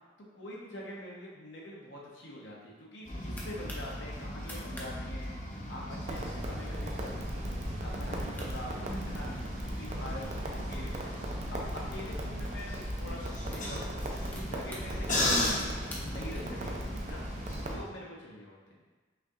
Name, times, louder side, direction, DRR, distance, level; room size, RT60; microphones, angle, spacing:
voice 1, 0.3-5.3 5.7-9.4 9.7-11.0 11.5-18.8, left 1 dB, 75° left, -3 dB, 1.0 m, -45 dB
sound 1, 2.8-3.9 4.3-4.9 5.2-5.3 5.6-6.0 6.5-6.8 7.2-7.3 8.0-8.1 8.3-9.5 10.1-12.0 12.8-12.9 13.3-16.4, left 1 dB, 10° left, 0.6 m, -49 dB
sound 2, 3.0-17.8, left 1 dB, 45° left, 0.8 m, -37 dB
Crackle, 6.1-17.7, right 1 dB, 40° right, 0.5 m, -39 dB
5.6 x 2.7 x 2.4 m, 1.3 s
head